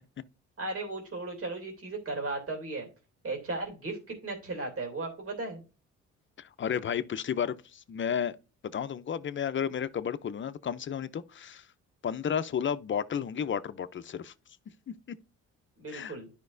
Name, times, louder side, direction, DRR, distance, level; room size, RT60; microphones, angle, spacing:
voice 1, 0.6-2.9 3.2-5.6 15.8-16.3, right 2 dB, 50° right, 2.8 m, -36 dB
voice 2, 6.4-8.4 8.7-11.7 12.0-14.3 14.9-15.2 15.9-16.1, left 8 dB, 40° left, 0.7 m, -32 dB
10.5 x 5.2 x 2.6 m
cardioid pair, 90°, 30 cm